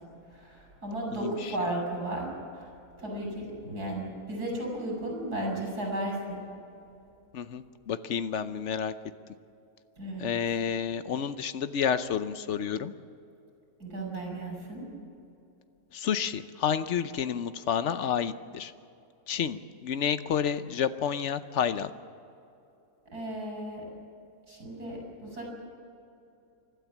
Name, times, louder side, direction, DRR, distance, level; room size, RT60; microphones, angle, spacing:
voice 1, 0.3-2.3 2.5-2.7 3.0-6.4 10.0-10.3 13.8-14.9 23.1-23.8 24.5-25.6, right 1 dB, 70° right, -1 dB, 6.5 m, -34 dB
voice 2, 7.3-8.9 10.2-12.9 15.9-18.7 19.3-21.9, left 8 dB, 55° left, 12 dB, 0.9 m, -30 dB
29.0 x 13.0 x 7.2 m, 2.8 s
omnidirectional pair, 1.7 m